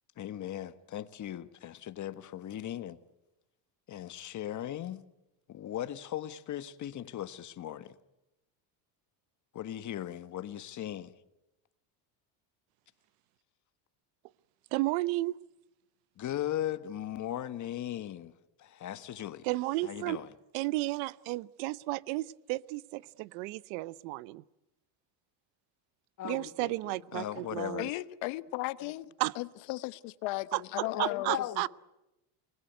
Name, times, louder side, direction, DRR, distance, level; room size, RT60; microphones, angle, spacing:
voice 1, 0.1-3.0 3.9-5.1 5.5-8.0 9.5-11.1 16.2-19.5 19.8-20.3 26.2-27.9 30.8-31.7, left 11 dB, 40° left, 1.5 m, -38 dB
voice 2, 14.7-15.4 19.4-20.2 20.5-24.4 26.2-27.9 29.2-29.3 30.5-31.7, right 20 dB, 75° right, 0.9 m, -33 dB
voice 3, 27.8-29.0 29.4-31.3, left 19 dB, 70° left, 1.2 m, -36 dB
29.5 x 20.0 x 9.3 m
supercardioid pair, 115°, 47 cm